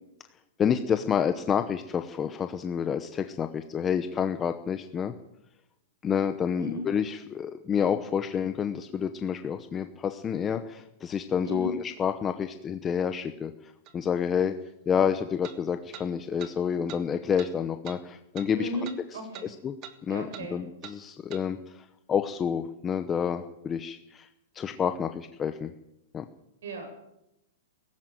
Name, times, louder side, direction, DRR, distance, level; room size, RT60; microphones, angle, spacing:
voice 1, 0.6-5.1 6.0-14.5 14.9-18.7 19.4-19.8 20.0-24.3 24.5-25.7 26.1-26.2, left 7 dB, 15° left, 8 dB, 0.9 m, -29 dB
sound 1, 13.9-14.0 15.4-15.6 15.9-16.1 16.4-16.5 16.9-17.0 17.4-17.5 17.9-18.0 18.4-18.5 18.8-19.0 19.3-19.5 19.8-20.0 20.3-20.5 20.8-21.0 21.3-21.4, right 9 dB, 30° right, 1.8 m, -44 dB
voice 2, 18.5-19.5 20.1-20.6 26.6-26.9, equal, 75° right, 4 dB, 8.0 m, -35 dB
18.0 x 16.0 x 9.2 m, 0.88 s
hypercardioid pair, 165°, 0 cm